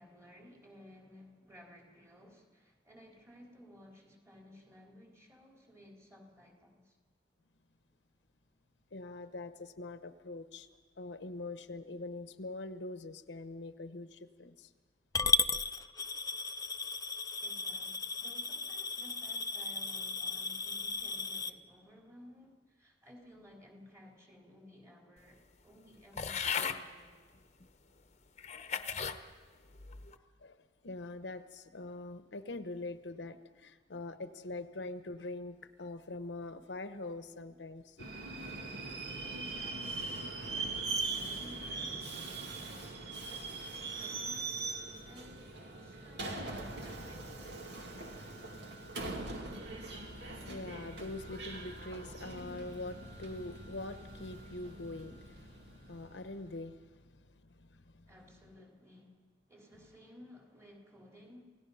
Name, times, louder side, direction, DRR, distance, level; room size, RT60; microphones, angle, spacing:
voice 1, 0.0-7.0 17.4-27.2 39.2-47.6 58.1-59.2 59.5-61.4, left 1 dB, 15° right, 3.5 m, -57 dB
voice 2, 8.9-10.7 11.0-14.7 30.4-30.6 30.8-38.1 46.2-46.4 48.2-58.1, left 2 dB, 75° left, 0.9 m, -44 dB
Coin (dropping) / Glass, 15.1-21.5, left 4 dB, 20° left, 0.5 m, -35 dB
sound 1, 26.2-26.8 27.6-27.7 28.4-29.2 29.8-30.2, left 7 dB, 40° left, 0.9 m, -36 dB
Subway metro underground, 38.0-56.4, right 3 dB, 70° right, 2.4 m, -41 dB
28.0 x 17.5 x 5.6 m
head